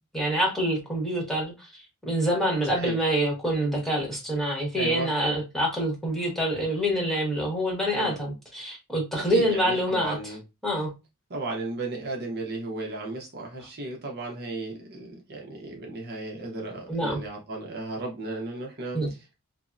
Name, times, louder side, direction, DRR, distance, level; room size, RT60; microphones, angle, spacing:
voice 1, 0.1-1.5 2.0-10.2 10.6-10.9 16.9-17.2 18.9-19.1, equal, ahead, 1.1 m, -26 dB
voice 2, 4.8-5.1 7.9-8.2 9.3-10.4 11.3-19.3, right 2 dB, 45° right, 0.7 m, -35 dB
3.4 x 2.0 x 2.5 m
head